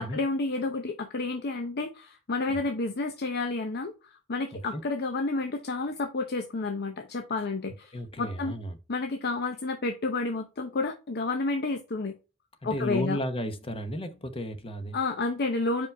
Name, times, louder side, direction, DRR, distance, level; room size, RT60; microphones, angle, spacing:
voice 1, 0.0-7.9 8.2-8.5 8.9-12.1 12.6-13.2 14.9-15.9, left 3 dB, 50° left, 0.7 m, -30 dB
voice 2, 7.9-8.8 12.6-15.0, equal, 25° left, 1.0 m, -33 dB
5.5 x 5.2 x 3.4 m
head